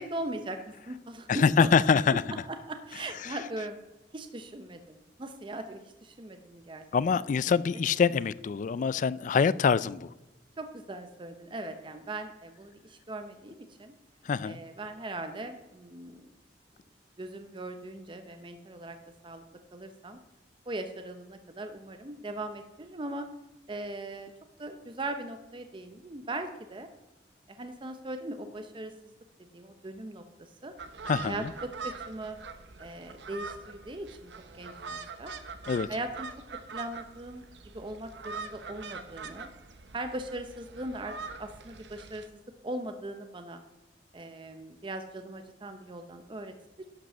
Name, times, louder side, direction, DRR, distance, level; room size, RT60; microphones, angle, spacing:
voice 1, 0.0-1.7 2.1-2.2 2.5-3.8 4.1-6.8 7.1-7.2 10.6-13.9 14.4-16.3 17.2-19.0 19.2-19.4 19.7-20.2 20.7-23.3 23.7-24.3 24.6-26.9 27.5-28.9 29.4-30.7 31.2-32.4 32.8-35.3 35.9-36.3 36.7-37.4 37.7-39.5 39.9-43.6 44.1-46.9, right 2 dB, 30° right, 0.7 m, -39 dB
voice 2, 1.3-2.2 3.2-3.4 6.9-10.1 14.2-14.6 31.1-31.5 35.7-35.9, left 6 dB, 45° left, 0.3 m, -25 dB
sound 1, 30.8-42.3, right 4 dB, 80° right, 0.9 m, -43 dB
11.5 x 5.2 x 6.7 m
head